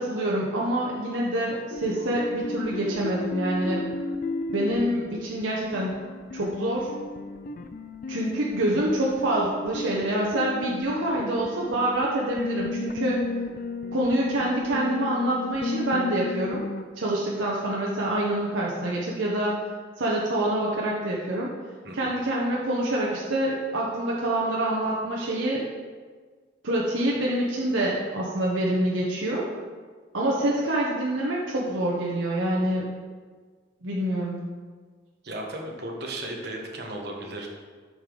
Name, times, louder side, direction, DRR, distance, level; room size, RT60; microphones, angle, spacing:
voice 1, 0.0-3.8 4.5-6.0 6.3-6.9 8.1-13.2 13.9-16.6 17.0-19.6 20.0-21.5 21.9-25.6 26.6-29.5 30.1-32.9 33.8-34.4, right 1 dB, 90° right, -4 dB, 1.0 m, -26 dB
sound 1, 1.7-16.8, left 3 dB, 45° left, 0.4 m, -34 dB
voice 2, 35.2-37.5, right 1 dB, 55° right, 1 dB, 1.2 m, -35 dB
8.4 x 5.1 x 3.8 m, 1.5 s
head